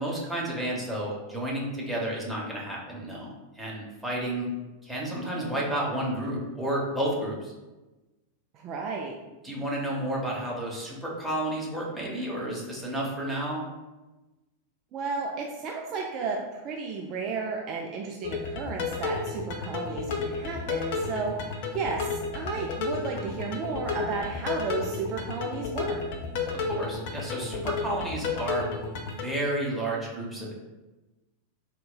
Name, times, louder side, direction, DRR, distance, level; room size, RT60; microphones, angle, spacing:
voice 1, 0.0-4.5 4.8-7.5 9.4-13.6 26.7-28.7 29.0-30.6, right 1 dB, ahead, -5 dB, 0.8 m, -31 dB
voice 2, 8.5-9.2 14.9-26.0, right 4 dB, 35° right, 0 dB, 0.3 m, -33 dB
sound 1, 18.2-29.2, left 4 dB, 50° left, 0.4 m, -32 dB
4.0 x 2.2 x 2.2 m, 1.1 s
figure-of-eight pair, 90°, 0 cm